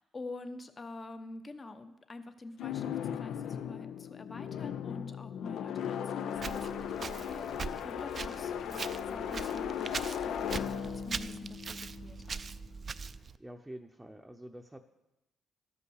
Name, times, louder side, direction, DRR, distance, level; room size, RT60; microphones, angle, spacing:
voice 1, 0.0-12.4, left 2 dB, 30° left, 9 dB, 0.8 m, -47 dB
sound 1, 2.6-12.6, left 8 dB, 75° left, 0.5 m, -37 dB
Walk footsteps, 6.4-13.4, right 5 dB, 40° right, 0.4 m, -41 dB
voice 2, 13.4-14.8, right 1 dB, 10° right, 3 dB, 0.7 m, -47 dB
13.0 x 5.5 x 6.4 m, 0.95 s
cardioid pair, 90°, 0 cm